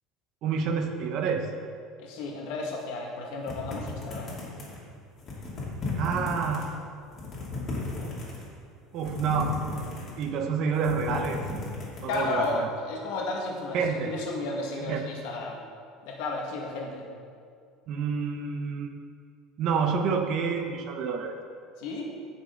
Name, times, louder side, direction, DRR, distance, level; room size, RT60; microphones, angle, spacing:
voice 1, 0.4-1.5 6.0-6.7 8.9-9.6 10.2-11.4 12.0-12.7 13.7-14.1 14.8-15.0 17.9-18.9 19.6-21.3, right 5 dB, 45° right, 5 dB, 1.0 m, -28 dB
voice 2, 2.0-4.3 12.1-15.6 16.0-17.1 21.8-22.1, left 2 dB, 75° left, -1 dB, 2.0 m, -33 dB
sound 1, 3.5-4.8 5.2-6.7 7.0-8.5 9.0-10.3 10.7-12.5, left 2 dB, 30° left, 2.8 m, -35 dB
16.0 x 6.7 x 3.9 m, 2.3 s
cardioid pair, 160°, 0 cm